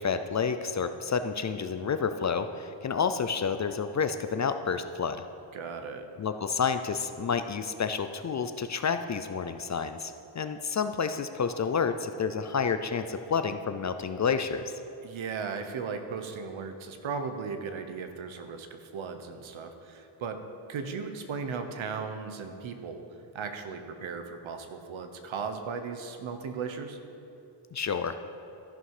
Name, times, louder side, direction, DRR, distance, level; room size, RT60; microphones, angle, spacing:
voice 1, 0.0-5.2 6.2-14.7 27.7-28.2, left 6 dB, 40° left, 9 dB, 0.4 m, -29 dB
voice 2, 5.5-6.0 15.0-20.4 20.7-23.0 23.3-27.0, right 5 dB, 70° right, 7 dB, 1.2 m, -36 dB
13.0 x 11.0 x 4.9 m, 2.9 s
wide cardioid pair, 175°, 49 cm